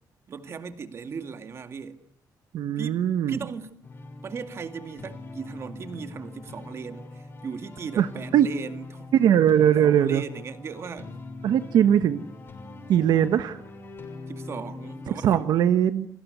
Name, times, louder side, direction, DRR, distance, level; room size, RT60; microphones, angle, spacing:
voice 1, 0.3-2.0 2.8-3.8 4.2-9.1 9.7-11.2 14.3-15.5, right 6 dB, 40° right, 2.2 m, -37 dB
voice 2, 2.5-3.4 8.0-8.1 8.3-8.5 9.1-10.2 11.4-12.2 12.9-13.6 15.2-16.1, right 10 dB, 75° right, 1.2 m, -20 dB
sound 1, 3.8-15.4, left 3 dB, 30° left, 6.2 m, -42 dB
29.5 x 24.0 x 8.2 m
cardioid pair, 175°, 7 cm